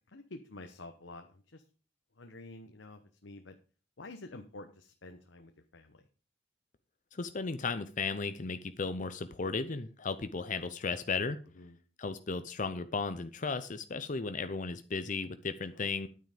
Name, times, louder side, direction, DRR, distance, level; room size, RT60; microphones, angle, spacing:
voice 1, 0.1-1.6 2.2-3.6 4.0-6.0 11.6-11.8 15.7-15.9, left 2 dB, 85° left, 6 dB, 1.1 m, -49 dB
voice 2, 7.1-11.4 12.0-16.1, left 4 dB, 45° left, 11 dB, 0.7 m, -35 dB
9.8 x 9.3 x 5.1 m, 0.37 s
head